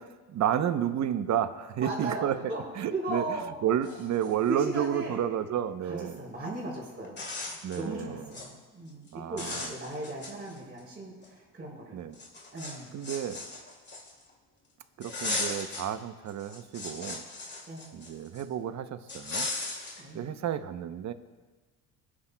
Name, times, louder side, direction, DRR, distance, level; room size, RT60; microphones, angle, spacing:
voice 1, 0.3-2.4 2.8-3.2 3.6-6.2 7.6-8.2 9.1-9.7 11.9-12.2 12.9-13.4 15.0-17.2 17.9-19.5 20.1-21.1, right 10 dB, 50° right, 11 dB, 0.8 m, -31 dB
voice 2, 1.8-2.6 2.9-3.6 4.5-5.3 5.8-7.2 7.7-12.0 12.5-12.9 17.7-18.0 20.0-20.3, right 2 dB, 30° right, -10 dB, 4.1 m, -37 dB
sound 1, 3.5-3.6 3.8-4.9 6.4-6.5 7.0-7.8 8.2-8.5 8.9-9.1 9.4-10.8 11.2-11.3 12.1-14.3 15.0-15.9 16.3-18.4 19.1-20.0, left 3 dB, 30° left, 2.4 m, -37 dB
25.0 x 9.8 x 2.2 m, 1.3 s
cardioid pair, 105°, 35 cm